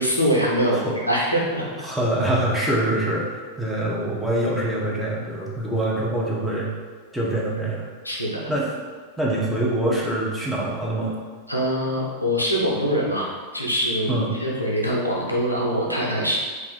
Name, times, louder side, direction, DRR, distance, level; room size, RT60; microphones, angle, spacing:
voice 1, 0.0-0.8 1.1-1.7 8.0-8.5 11.5-13.3 13.5-16.4, equal, 85° left, -3 dB, 0.5 m, -23 dB
voice 2, 1.8-6.7 7.1-7.8 8.5-8.7 9.2-11.1 14.1-14.3, right 1 dB, ahead, -6 dB, 0.7 m, -24 dB
2.4 x 2.4 x 3.9 m, 1.5 s
figure-of-eight pair, 90°, 0 cm